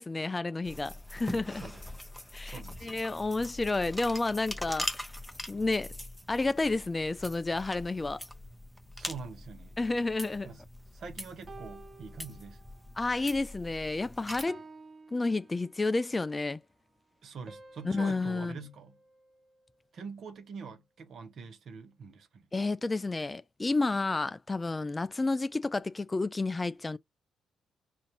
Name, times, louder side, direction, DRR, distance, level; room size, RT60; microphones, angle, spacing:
voice 1, 0.0-1.6 2.3-5.1 5.5-5.9 6.3-8.2 9.8-10.5 13.0-14.6 15.1-16.6 17.8-18.6 22.5-27.0, left 3 dB, 20° left, 0.3 m, -31 dB
sound 1, 0.6-14.4, left 1 dB, 5° left, 0.7 m, -42 dB
voice 2, 2.4-3.1 9.0-9.8 10.4-10.6 10.9-12.6 17.2-19.0 19.9-22.5, right 5 dB, 60° right, 1.1 m, -45 dB
sound 2, 11.5-13.0 13.5-13.8 14.5-16.1 17.5-19.9, right 3 dB, 35° right, 0.8 m, -53 dB
5.1 x 2.6 x 2.9 m
cardioid pair, 90°, 0 cm